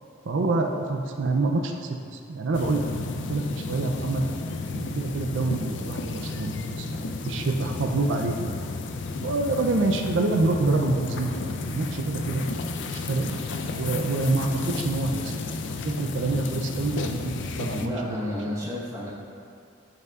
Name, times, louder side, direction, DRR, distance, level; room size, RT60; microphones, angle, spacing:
voice 1, 0.2-4.2 4.7-7.0 7.3-8.6 9.2-12.4 12.9-13.4 13.7-15.4 15.8-18.4, right 2 dB, 65° right, 3 dB, 0.5 m, -27 dB
sound 1, 2.5-17.9, left 3 dB, 60° left, 0.4 m, -32 dB
voice 2, 17.8-19.1, left 1 dB, 15° right, -6 dB, 1.1 m, -31 dB
12.0 x 5.5 x 2.4 m, 2.4 s
head